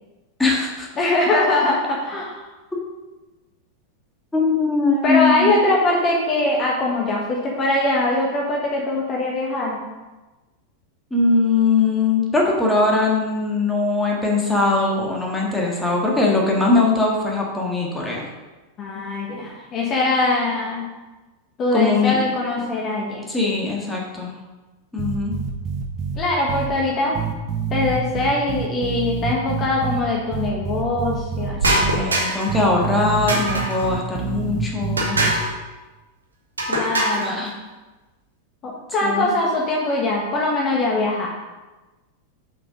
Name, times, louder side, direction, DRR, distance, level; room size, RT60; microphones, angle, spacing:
voice 1, 0.4-0.9 4.3-5.5 11.1-18.2 21.7-22.2 23.3-24.3 24.9-25.3 31.6-35.2 37.2-37.5 39.0-39.3, left 3 dB, 10° left, -2 dB, 1.7 m, -21 dB
voice 2, 1.0-2.4 5.0-9.8 18.8-20.9 21.6-23.2 26.2-27.2 27.7-32.2 36.7-37.5 38.6-41.3, left 2 dB, 30° left, -2 dB, 1.3 m, -22 dB
sound 1, 25.0-26.2 26.5-26.7 27.1-30.0 30.3-31.5 31.8-32.0 32.5-35.3, right 7 dB, 35° right, 1.0 m, -26 dB
sound 2, 31.6-32.6 33.3-33.9 35.0-35.6 36.6-37.3, right 1 dB, 75° right, 1.4 m, -22 dB
7.5 x 5.2 x 5.1 m, 1.2 s
figure-of-eight pair, 90°, 0 cm